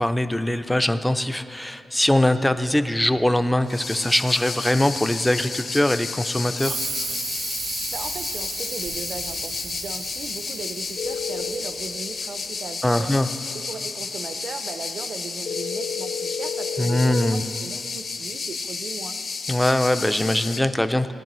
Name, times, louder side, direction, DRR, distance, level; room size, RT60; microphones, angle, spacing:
voice 1, 0.0-6.8 12.8-13.3 16.8-17.4 19.5-21.1, left 1 dB, 5° left, 10 dB, 0.3 m, -22 dB
sound 1, 3.7-20.6, left 4 dB, 45° left, 0.6 m, -32 dB
sound 2, 6.6-11.9, right 5 dB, 75° right, 1.2 m, -34 dB
voice 2, 7.9-13.2 13.5-19.2, right 4 dB, 55° right, 9 dB, 0.5 m, -37 dB
sound 3, 11.0-11.5 15.5-17.3, left 6 dB, 85° left, 1.0 m, -30 dB
18.0 x 10.0 x 3.0 m, 2.5 s
wide cardioid pair, 155°, 0 cm